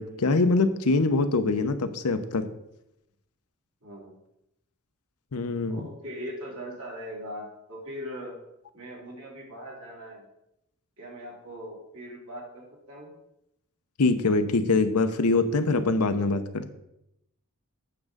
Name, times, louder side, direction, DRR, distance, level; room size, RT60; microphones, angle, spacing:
voice 1, 0.0-2.5 5.3-5.8 14.0-16.7, left 3 dB, 85° left, 9 dB, 0.7 m, -24 dB
voice 2, 3.8-4.1 5.7-8.4 8.7-10.3 11.0-13.1, equal, 70° right, -3 dB, 2.7 m, -40 dB
8.6 x 3.6 x 6.5 m, 0.84 s
head